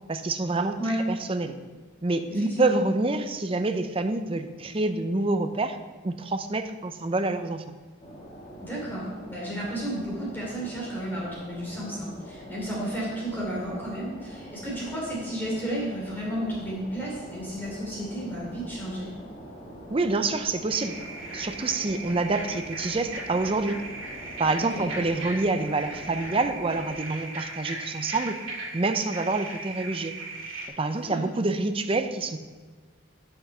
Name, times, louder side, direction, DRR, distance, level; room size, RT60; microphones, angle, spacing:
voice 1, 0.1-1.6 2.0-5.8 6.0-7.7 19.9-21.0 21.3-23.9 24.4-28.4 28.7-30.2 30.8-32.4, right 3 dB, 25° right, 8 dB, 0.5 m, -27 dB
voice 2, 2.3-2.8 8.6-19.1 24.6-24.8 31.0-31.3, right 1 dB, 10° left, -6 dB, 3.0 m, -33 dB
sound 1, 8.0-26.9, equal, 30° left, 1.9 m, -44 dB
sound 2, 20.7-30.7, right 2 dB, 80° right, 2.1 m, -38 dB
8.2 x 6.6 x 5.5 m, 1.4 s
head